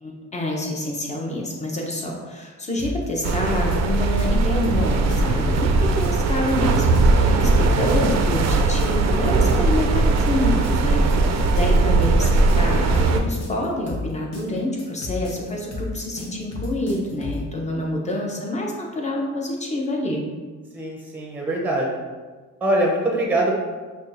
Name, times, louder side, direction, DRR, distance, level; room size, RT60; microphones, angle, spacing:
voice 1, 0.0-20.2, left 1 dB, 25° left, -1 dB, 0.9 m, -27 dB
sound 1, 2.8-17.5, left 3 dB, 55° left, 1.0 m, -32 dB
sound 2, 3.2-13.2, right 3 dB, 60° right, 0.5 m, -19 dB
voice 2, 20.7-22.0 22.6-23.5, right 1 dB, 5° right, -1 dB, 0.8 m, -23 dB
5.6 x 2.4 x 2.6 m, 1.4 s
cardioid pair, 90°, 30 cm